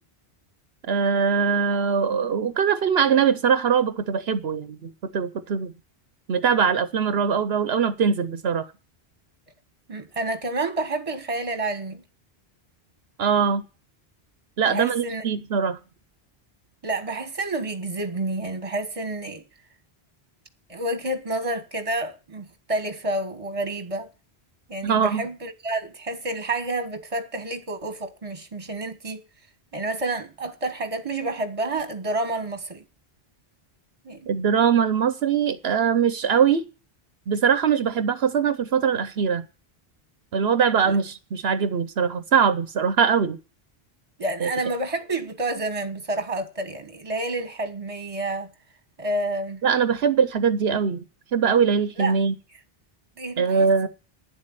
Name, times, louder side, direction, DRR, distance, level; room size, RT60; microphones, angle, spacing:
voice 1, 0.9-5.7 6.3-8.6 13.2-13.6 14.6-15.8 24.8-25.2 34.3-36.6 37.3-39.5 40.3-43.4 44.4-44.5 49.6-51.0 51.3-52.3 53.4-53.9, right 6 dB, 80° right, 1.0 m, -22 dB
voice 2, 9.9-12.0 14.6-15.4 16.8-19.4 20.7-24.1 24.7-29.2 29.7-32.8 34.0-34.3 40.8-41.0 44.2-48.5 49.0-49.6 52.0-52.1 53.2-53.7, right 2 dB, 35° right, 1.5 m, -29 dB
10.0 x 7.6 x 9.0 m
omnidirectional pair, 1.0 m